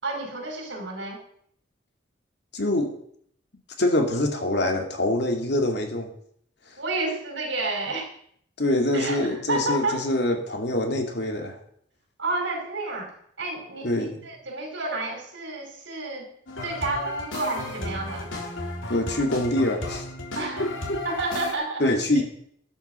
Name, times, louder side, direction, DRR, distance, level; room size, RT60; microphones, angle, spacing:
voice 1, 0.0-1.2 6.8-8.1 8.9-10.0 12.2-13.1 13.4-16.3 16.6-18.3 20.4-20.7 21.0-21.8, right 2 dB, 70° right, 1 dB, 5.6 m, -30 dB
voice 2, 2.5-2.9 3.8-6.1 8.6-11.6 13.8-14.3 18.9-20.1 20.6-21.0 21.8-22.2, left 1 dB, 60° left, 4 dB, 2.5 m, -25 dB
sound 1, 16.5-21.5, left 2 dB, 85° left, 3.4 m, -34 dB
13.0 x 11.5 x 5.7 m, 0.66 s
head